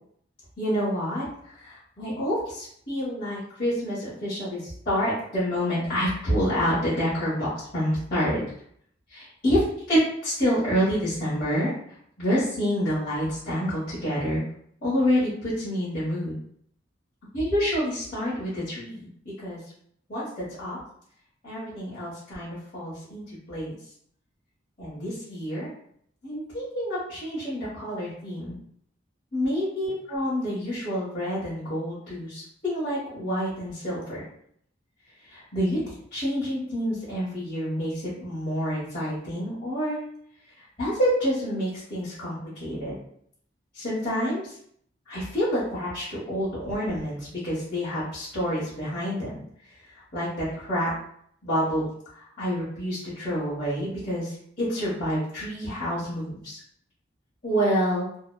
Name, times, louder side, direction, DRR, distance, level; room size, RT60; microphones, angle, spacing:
voice 1, 0.6-8.4 9.1-11.7 12.2-14.4 14.8-16.4 17.3-19.1 19.4-19.6 20.1-20.8 21.4-23.7 24.8-25.7 26.2-28.6 29.3-34.2 35.3-40.0 40.6-43.0 43.7-44.6 45.0-49.4 49.9-50.9 51.4-51.8 52.1-56.6 57.4-58.1, equal, 45° left, -13 dB, 1.1 m, -28 dB
2.8 x 2.0 x 2.2 m, 0.67 s
head